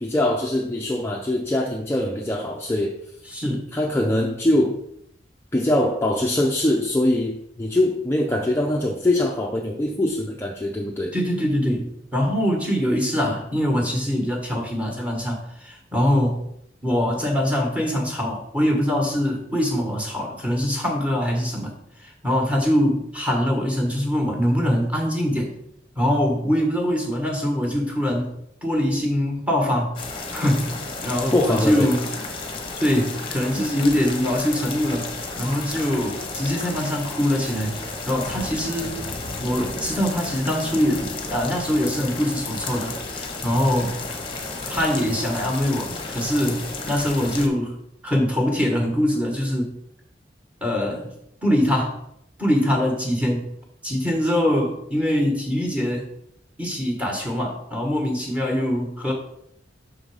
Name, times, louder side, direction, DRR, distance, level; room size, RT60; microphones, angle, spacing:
voice 1, 0.0-3.0 3.7-4.8 5.5-11.1 31.3-31.9, left 1 dB, 15° left, -1 dB, 0.5 m, -22 dB
voice 2, 3.3-3.7 11.1-16.4 16.8-21.7 22.0-25.5 26.0-28.3 28.6-30.0 30.3-30.7 31.0-32.1 32.8-35.1 35.4-37.8 38.1-39.0 39.4-43.9 44.7-47.7 48.0-49.7 50.6-51.1 51.4-51.9 52.4-53.5 53.8-56.1 56.6-59.1, equal, 5° right, 1 dB, 1.3 m, -23 dB
sound 1, 30.0-47.5, left 3 dB, 30° left, 0.9 m, -32 dB
6.1 x 3.9 x 4.8 m, 0.73 s
head